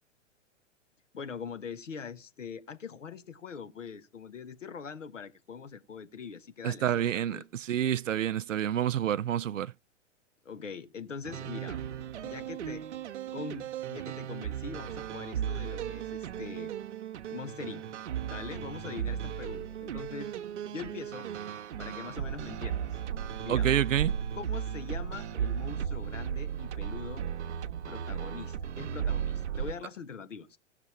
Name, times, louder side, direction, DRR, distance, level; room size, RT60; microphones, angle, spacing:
voice 1, 1.1-7.5 10.4-11.8 12.2-12.8 13.3-16.7 17.3-17.8 18.2-20.3 20.7-21.3 21.8-23.0 23.4-23.7 24.3-27.2 27.9-30.6, left 6 dB, 80° left, 1.4 m, -42 dB
voice 2, 6.6-9.7 23.5-24.1, right 10 dB, 85° right, 0.5 m, -28 dB
sound 1, 11.2-29.7, right 9 dB, 70° right, 0.9 m, -35 dB
17.0 x 6.7 x 4.3 m
figure-of-eight pair, 110°, 37 cm